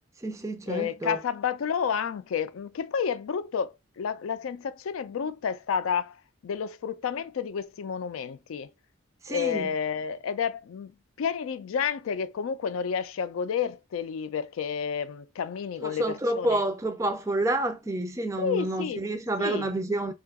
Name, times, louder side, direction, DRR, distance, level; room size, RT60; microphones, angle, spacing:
voice 1, 0.0-1.2 9.2-9.7 15.8-20.1, right 1 dB, 15° right, 0.3 m, -29 dB
voice 2, 0.7-8.7 9.3-16.6 18.4-19.0 19.4-19.7, left 7 dB, 90° left, 0.4 m, -30 dB
2.7 x 2.3 x 3.4 m
head